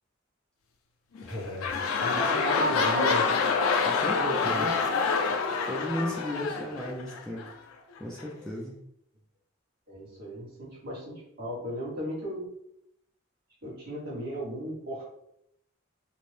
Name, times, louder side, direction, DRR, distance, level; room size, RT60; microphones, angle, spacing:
sound 1, 1.2-7.5 8.2-8.3, left 4 dB, 90° left, 0.3 m, -27 dB
voice 1, 1.2-3.3 4.4-4.7 9.9-12.5 13.6-15.1, equal, 50° right, -5 dB, 1.1 m, -36 dB
voice 2, 3.8-4.7 5.6-7.6 8.0-8.8, equal, 5° left, -3 dB, 0.3 m, -34 dB
2.5 x 2.0 x 3.1 m, 0.74 s
head